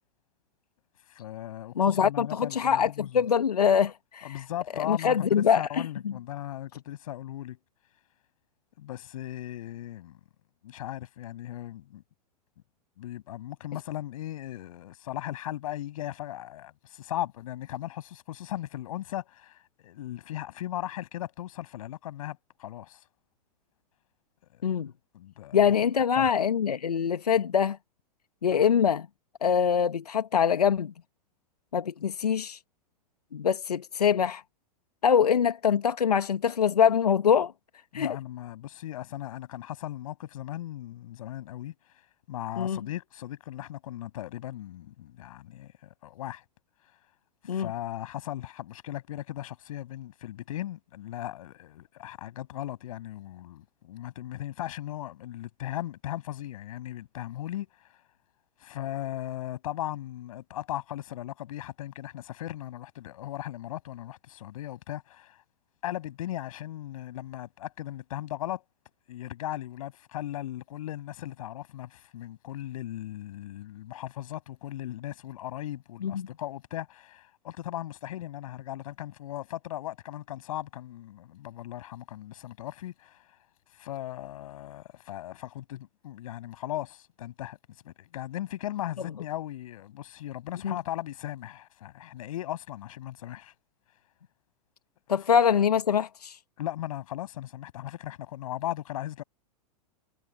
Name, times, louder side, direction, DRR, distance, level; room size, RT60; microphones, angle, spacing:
voice 1, 1.1-3.2 4.2-7.6 8.8-10.2 10.6-12.0 13.0-23.0 24.5-24.8 25.1-25.6 26.2-26.3 37.9-41.7 42.3-46.4 47.4-57.7 58.6-65.4 65.8-68.6 69.1-83.2 83.8-87.6 87.8-93.5 96.6-99.2, left 13 dB, 60° left, 7.0 m, -37 dB
voice 2, 1.8-4.4 4.8-6.1 24.6-24.9 25.5-27.8 28.4-29.1 29.4-30.9 31.7-32.6 33.3-34.4 35.0-37.5 37.9-38.1 42.6-42.8 47.5-47.7 76.0-76.3 90.6-90.8 95.1-96.4, left 7 dB, 75° left, 1.6 m, -24 dB
figure-of-eight pair, 100°, 20 cm